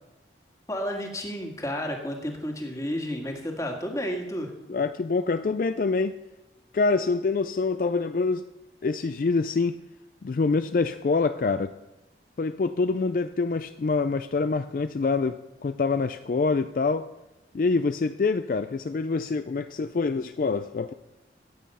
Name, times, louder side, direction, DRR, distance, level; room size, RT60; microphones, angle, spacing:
voice 1, 0.7-4.5, equal, 20° left, 2 dB, 1.8 m, -31 dB
voice 2, 4.7-6.2 6.7-8.4 8.8-9.7 10.2-11.7 12.4-17.1 17.5-20.9, left 4 dB, 50° left, 11 dB, 0.4 m, -25 dB
14.5 x 8.6 x 5.5 m, 0.98 s
head